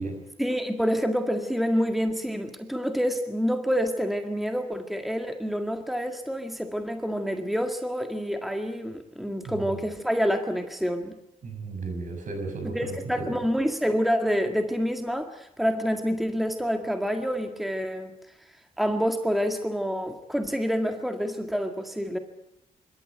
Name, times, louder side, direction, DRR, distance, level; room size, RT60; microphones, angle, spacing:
voice 1, 0.4-11.1 12.7-18.1 18.8-22.2, equal, ahead, 6 dB, 1.8 m, -27 dB
voice 2, 11.4-13.4, right 3 dB, 65° right, 5 dB, 6.5 m, -34 dB
25.0 x 13.0 x 9.2 m, 0.83 s
cardioid pair, 80°, 14 cm